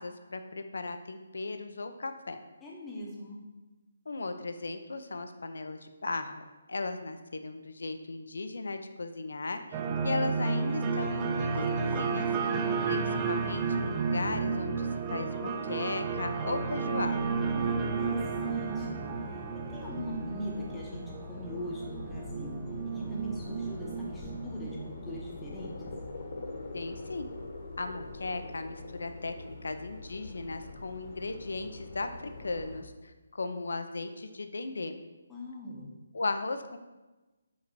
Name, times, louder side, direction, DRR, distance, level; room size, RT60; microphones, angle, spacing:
voice 1, 0.0-2.4 4.1-12.3 12.9-17.2 26.7-27.3 27.8-32.1 32.4-34.9 36.1-36.8, left 3 dB, 75° left, 8 dB, 0.5 m, -36 dB
voice 2, 2.6-3.4 17.4-19.0 19.3-19.4 19.7-25.9 35.3-35.9, equal, 10° left, -4 dB, 1.0 m, -41 dB
sound 1, 9.7-26.0, right 5 dB, 20° right, 0.4 m, -32 dB
sound 2, 17.0-32.8, left 3 dB, 40° left, 1.1 m, -44 dB
5.2 x 3.9 x 4.6 m, 1.1 s
hypercardioid pair, 160°, 0 cm